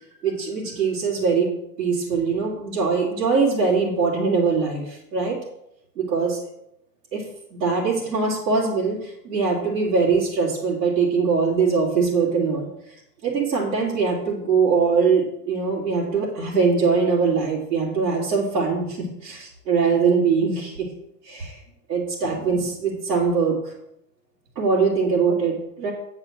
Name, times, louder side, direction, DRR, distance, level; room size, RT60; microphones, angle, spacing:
voice 1, 0.2-1.5 1.8-5.4 6.0-6.4 7.1-7.2 7.6-12.7 13.2-20.9 21.2-21.6 21.9-23.7 24.5-25.9, right 5 dB, 80° right, -8 dB, 3.0 m, -22 dB
8.4 x 4.9 x 7.4 m, 0.79 s
hypercardioid pair, 95°, 50 cm